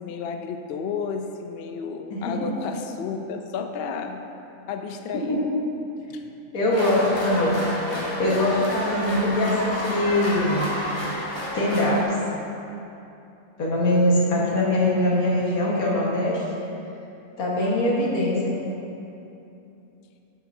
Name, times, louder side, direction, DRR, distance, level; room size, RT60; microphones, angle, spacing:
voice 1, 0.0-4.2 4.7-5.4 6.1-6.2 14.3-15.2, left 5 dB, 65° left, 5 dB, 0.6 m, -32 dB
voice 2, 2.1-2.7 5.1-5.4 6.5-10.7 11.5-12.1 13.6-16.4 17.4-18.5, left 1 dB, 85° left, -5 dB, 1.9 m, -23 dB
sound 1, 6.7-12.0, equal, 20° left, 1.1 m, -30 dB
12.5 x 5.8 x 2.7 m, 2.8 s
omnidirectional pair, 1.5 m